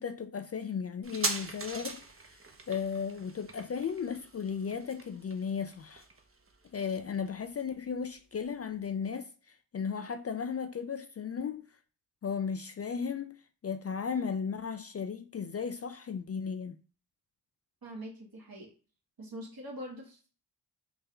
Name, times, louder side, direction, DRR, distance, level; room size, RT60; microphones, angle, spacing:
voice 1, 0.0-2.0 2.3-2.4 2.7-6.0 6.7-9.3 9.7-11.7 12.2-16.8, left 6 dB, 35° left, 0.4 m, -35 dB
sound 1, 1.0-8.1 8.4-8.5, right 3 dB, 30° right, 0.7 m, -41 dB
voice 2, 17.8-18.7 19.2-20.3, equal, 55° right, 1.7 m, -43 dB
3.2 x 2.8 x 3.7 m
cardioid pair, 45°, 42 cm